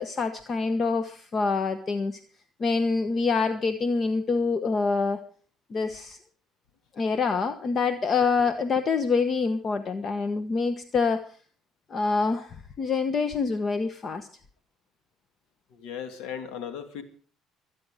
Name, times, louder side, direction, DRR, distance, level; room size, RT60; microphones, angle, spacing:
voice 1, 0.0-2.2 2.6-5.2 5.7-6.2 7.0-11.2 11.9-14.3, left 4 dB, 40° left, 1.3 m, -26 dB
voice 2, 15.7-17.0, left 8 dB, 80° left, 2.2 m, -37 dB
23.5 x 9.6 x 5.1 m
supercardioid pair, 90°, 0 cm